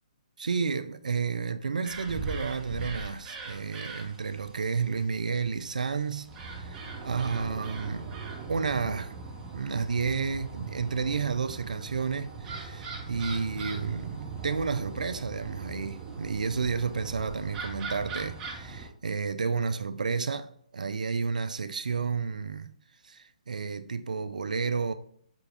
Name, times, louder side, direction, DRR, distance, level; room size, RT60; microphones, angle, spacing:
voice 1, 0.4-8.2 8.5-9.1 9.5-22.7 23.0-24.9, right 5 dB, 80° right, 0.3 m, -31 dB
sound 1, 1.8-18.9, right 4 dB, 20° right, 0.7 m, -40 dB
5.1 x 2.3 x 3.4 m
figure-of-eight pair, 140°, 4 cm